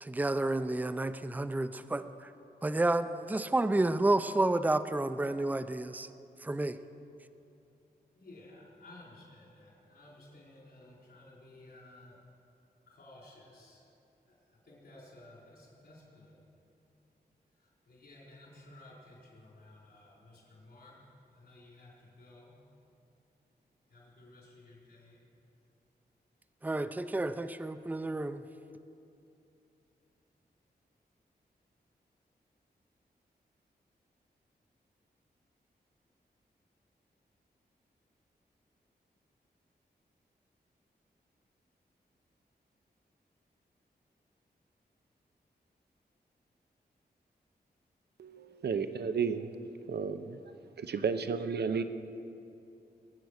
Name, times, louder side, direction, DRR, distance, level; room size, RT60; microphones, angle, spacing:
voice 1, 0.0-2.3 2.6-6.1 6.4-6.8 26.6-28.4, right 2 dB, 10° right, 11 dB, 0.5 m, -30 dB
voice 2, 8.1-12.2 12.9-13.8 14.3-16.4 17.6-21.0 21.3-22.5 23.9-25.2, left 2 dB, 70° left, -5 dB, 4.1 m, -55 dB
voice 3, 48.2-49.5 49.9-50.4 50.8-51.8, right 6 dB, 75° right, 10 dB, 0.7 m, -32 dB
21.5 x 8.0 x 6.5 m, 2.7 s
wide cardioid pair, 90°, 17 cm